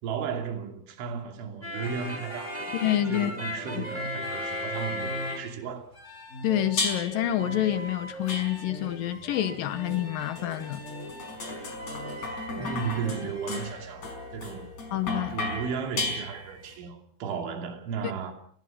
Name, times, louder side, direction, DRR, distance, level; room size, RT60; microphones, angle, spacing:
voice 1, 0.0-2.7 3.1-5.9 12.6-14.7 15.3-18.3, right 6 dB, 75° right, 5.1 m, -34 dB
sound 1, 1.6-5.7 5.9-13.6, left 1 dB, 15° left, 7.0 m, -37 dB
voice 2, 2.8-3.3 3.7-3.8 6.4-10.8 14.9-15.3, left 12 dB, 85° left, 2.0 m, -28 dB
sound 2, 6.8-7.3 8.3-8.9 9.9-16.7, left 3 dB, 35° left, 6.2 m, -35 dB
29.5 x 19.0 x 6.0 m
omnidirectional pair, 5.6 m